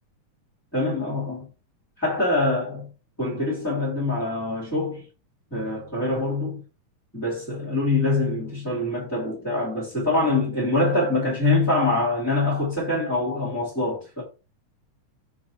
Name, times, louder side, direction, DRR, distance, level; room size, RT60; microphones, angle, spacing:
voice 1, 0.7-1.5 2.0-2.9 3.2-5.1 5.5-6.6 7.1-14.2, left 2 dB, 5° left, 2.5 m, -24 dB
6.7 x 5.7 x 2.9 m
omnidirectional pair, 3.4 m